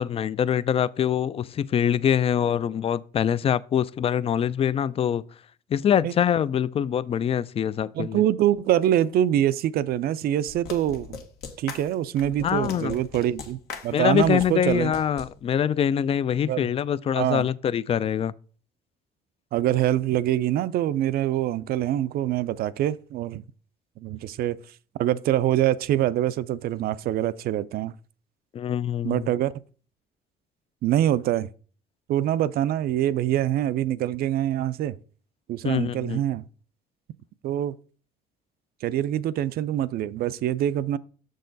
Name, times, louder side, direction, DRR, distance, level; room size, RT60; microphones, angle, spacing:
voice 1, 0.0-5.2 5.7-8.2 12.4-12.9 13.9-18.3 28.5-29.3 35.6-36.2, left 9 dB, 35° left, 0.4 m, -24 dB
voice 2, 7.9-11.2 11.6-14.9 16.5-16.7 17.1-17.5 19.5-23.4 24.0-24.6 25.0-27.9 29.0-29.5 30.8-31.5 32.1-35.0 35.5-36.4 37.4-37.7 38.8-41.0, right 12 dB, 65° right, 0.5 m, -24 dB
sound 1, 10.5-15.3, left 6 dB, 75° left, 1.4 m, -39 dB
6.7 x 6.4 x 3.9 m
cardioid pair, 110°, 17 cm